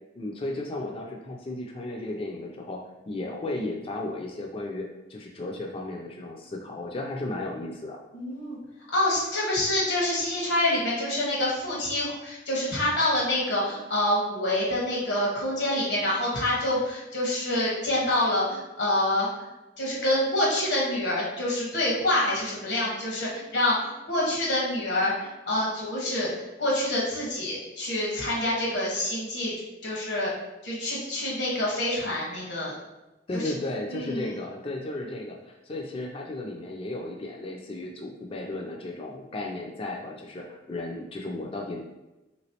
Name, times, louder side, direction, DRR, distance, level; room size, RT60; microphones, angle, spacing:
voice 1, 0.1-8.0 33.3-41.8, left 2 dB, 30° left, 1 dB, 0.3 m, -34 dB
voice 2, 8.1-8.6 8.9-19.3 19.8-29.5 29.8-30.3 30.6-32.7 33.3-33.5 33.9-34.2, left 1 dB, 75° left, -5 dB, 1.2 m, -27 dB
3.3 x 3.0 x 2.8 m, 1.0 s
head